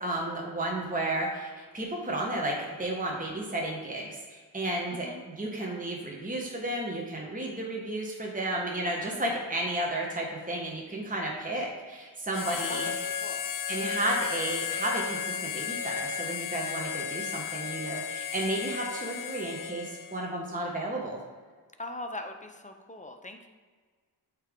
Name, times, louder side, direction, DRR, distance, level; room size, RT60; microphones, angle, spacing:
voice 1, 0.0-12.9 13.7-21.2, right 1 dB, 20° right, -2 dB, 1.2 m, -33 dB
voice 2, 4.9-5.2 12.7-12.9 13.2-13.4 21.8-23.5, left 2 dB, 15° left, 5 dB, 0.7 m, -40 dB
Harmonica, 12.3-20.3, left 8 dB, 50° left, 0.5 m, -34 dB
8.3 x 3.3 x 3.7 m, 1.5 s
cardioid pair, 40°, 43 cm